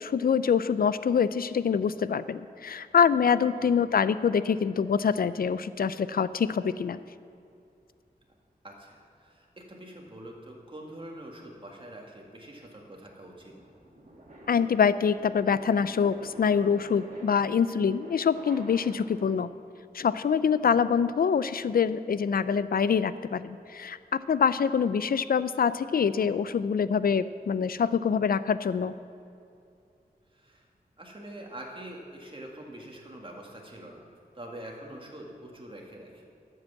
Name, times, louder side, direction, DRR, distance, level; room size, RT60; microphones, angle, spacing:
voice 1, 0.0-7.0 14.5-19.5 19.9-28.9, left 6 dB, 65° left, 15 dB, 0.4 m, -25 dB
voice 2, 8.6-13.6 20.6-20.9 30.3-30.7 31.0-34.0 34.3-36.4, right 1 dB, 30° right, 0 dB, 2.0 m, -45 dB
sound 1, 11.8-19.4, right 1 dB, 50° right, 2.4 m, -50 dB
12.0 x 8.0 x 7.1 m, 2.6 s
wide cardioid pair, 100°, 16 cm